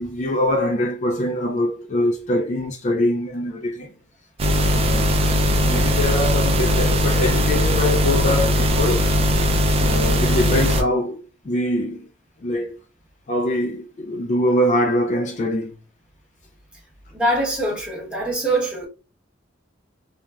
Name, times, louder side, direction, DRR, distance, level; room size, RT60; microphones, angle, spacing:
voice 1, 0.0-3.9 4.6-5.1 5.6-9.1 9.8-12.1 12.4-12.7 13.3-15.7, left 1 dB, 40° left, 0.4 m, -23 dB
sound 1, 4.4-10.8, equal, 30° right, 0.4 m, -19 dB
voice 2, 17.1-18.9, right 1 dB, 5° right, 1.0 m, -23 dB
3.2 x 2.2 x 2.3 m
head